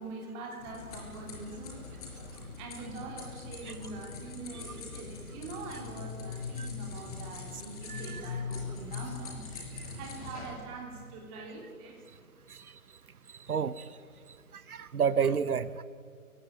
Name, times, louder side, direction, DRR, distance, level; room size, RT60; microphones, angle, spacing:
voice 1, 0.0-1.8 2.6-9.4 10.0-12.0, right 3 dB, 10° right, 0 dB, 3.2 m, -43 dB
sound 1, 0.6-10.5, left 5 dB, 25° left, 5.3 m, -41 dB
voice 2, 7.9-8.2 11.4-11.5 13.5-13.8 14.7-15.8, right 7 dB, 75° right, 15 dB, 1.2 m, -29 dB
29.0 x 17.0 x 9.1 m, 2.2 s
hypercardioid pair, 165°, 44 cm